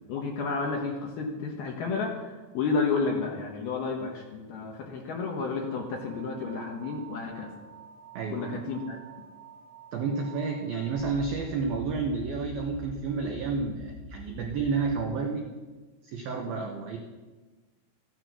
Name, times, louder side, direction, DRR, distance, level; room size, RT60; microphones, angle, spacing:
voice 1, 0.1-7.5 8.3-9.0, left 4 dB, 65° left, 0 dB, 2.5 m, -31 dB
sound 1, 5.6-15.1, right 2 dB, 65° right, 4.0 m, -46 dB
voice 2, 8.2-8.5 9.9-15.5 16.0-17.0, right 4 dB, 85° right, 2 dB, 2.1 m, -30 dB
15.5 x 11.0 x 6.2 m, 1.2 s
omnidirectional pair, 6.0 m